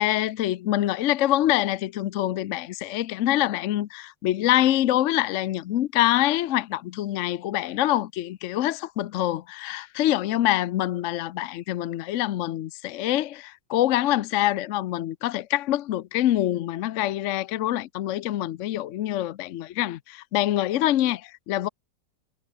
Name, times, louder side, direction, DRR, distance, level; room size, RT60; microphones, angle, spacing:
voice 1, 0.0-21.7, left 14 dB, 70° left, 0.7 m, -25 dB
omnidirectional pair, 1.9 m